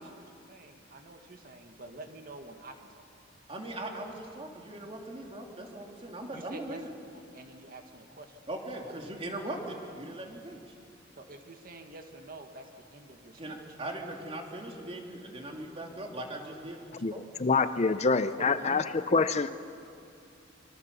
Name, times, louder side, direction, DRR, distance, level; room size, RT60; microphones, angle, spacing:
voice 1, 0.0-3.0 6.3-6.8 7.1-8.4 8.8-8.9 11.2-13.6 18.4-18.8, right 2 dB, 50° right, 5 dB, 1.8 m, -47 dB
voice 2, 3.5-6.9 8.5-10.6 13.4-17.2, right 1 dB, 30° right, 1 dB, 3.0 m, -40 dB
voice 3, 17.0-19.5, left 4 dB, 35° left, 12 dB, 0.6 m, -26 dB
25.5 x 24.0 x 6.9 m, 2.5 s
head